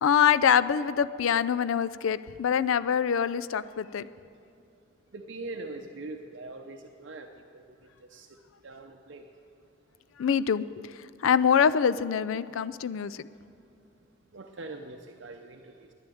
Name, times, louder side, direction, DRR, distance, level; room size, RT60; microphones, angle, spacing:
voice 1, 0.0-4.1 10.2-13.3, left 7 dB, 85° left, 15 dB, 0.4 m, -25 dB
voice 2, 5.1-7.3 7.5-7.7 8.0-8.3 8.6-9.2 14.3-15.9, right 2 dB, 65° right, 4 dB, 0.7 m, -42 dB
10.5 x 10.0 x 9.2 m, 2.6 s
head